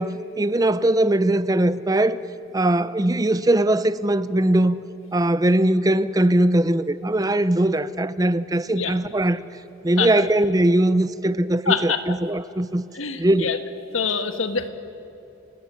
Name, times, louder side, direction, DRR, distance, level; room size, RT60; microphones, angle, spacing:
voice 1, 0.0-2.2 2.5-4.8 5.1-9.4 9.8-12.8 13.2-13.5, right 1 dB, 20° right, 0.5 m, -20 dB
voice 2, 11.6-12.0 12.9-13.6 13.9-14.7, left 5 dB, 85° left, 1.6 m, -25 dB
29.5 x 16.5 x 9.2 m
head